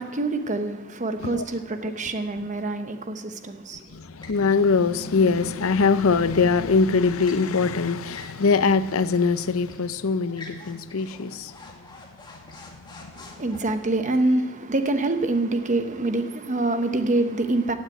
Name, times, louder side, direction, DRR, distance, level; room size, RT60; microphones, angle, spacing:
voice 1, 0.0-3.8 13.2-17.7, right 2 dB, 35° right, 1.0 m, -25 dB
voice 2, 3.9-11.5 12.9-13.3, left 4 dB, 70° left, 0.6 m, -22 dB
sound 1, 4.2-4.5 6.7-7.5 8.1-8.7 9.1-9.2 9.7-9.9 10.3-13.6, left 2 dB, 20° left, 2.0 m, -46 dB
15.5 x 6.5 x 9.2 m
head